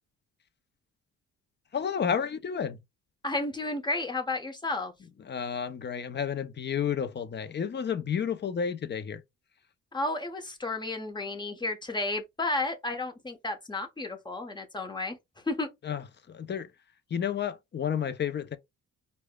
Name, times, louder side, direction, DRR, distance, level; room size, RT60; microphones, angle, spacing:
voice 1, 1.7-2.8 5.3-9.2 15.8-16.0 16.3-16.7 17.1-18.6, left 7 dB, 35° left, 0.6 m, -31 dB
voice 2, 3.2-4.9 9.9-15.2 15.5-15.7, left 2 dB, 15° left, 1.1 m, -32 dB
4.7 x 2.3 x 2.3 m
cardioid pair, 90°, 30 cm